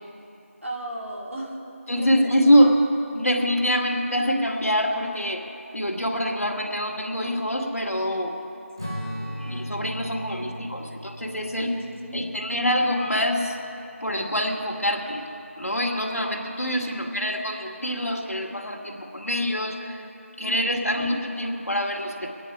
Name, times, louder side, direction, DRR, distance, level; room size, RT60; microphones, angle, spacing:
voice 1, 0.6-1.6 2.0-2.5 9.4-9.9 11.5-12.2 16.8-17.1 20.4-21.1, equal, 60° right, -3 dB, 3.0 m, -36 dB
voice 2, 1.9-2.8 3.1-5.4 5.7-8.3 9.4-11.7 12.1-13.6 14.0-15.2 15.6-20.0 20.4-22.3, equal, 80° left, 0 dB, 2.4 m, -25 dB
Strum, 8.8-13.4, equal, 20° right, 1.0 m, -37 dB
24.5 x 10.0 x 4.8 m, 2.9 s
figure-of-eight pair, 180°, 8 cm